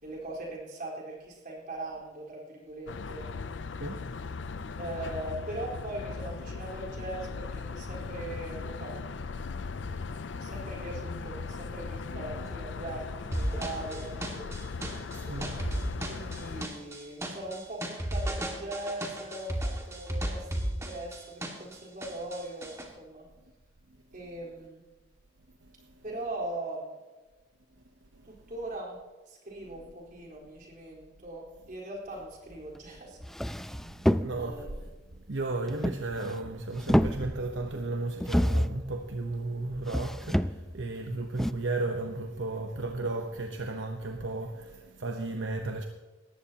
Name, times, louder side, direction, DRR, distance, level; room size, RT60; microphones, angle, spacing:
voice 1, 0.0-3.3 4.8-9.0 10.3-14.1 15.4-23.3 24.1-24.8 26.0-27.0 28.3-29.0 29.3-33.2 34.1-34.8, right 1 dB, 50° right, 4.3 m, -40 dB
sound 1, 2.9-16.7, left 4 dB, 70° left, 0.6 m, -38 dB
voice 2, 9.7-10.5 15.1-15.5 15.8-15.9 25.6-26.0 28.1-28.4 33.7-34.7 35.1-45.9, right 2 dB, 75° right, 1.0 m, -35 dB
sound 2, 13.3-21.8 22.0-22.9, right 1 dB, 15° right, 2.0 m, -34 dB
sound 3, 32.8-32.9 33.2-34.6 35.7-36.5 36.7-37.6 38.2-38.9 39.9-40.8 41.4-41.5, equal, ahead, 0.3 m, -28 dB
19.0 x 14.5 x 2.9 m
head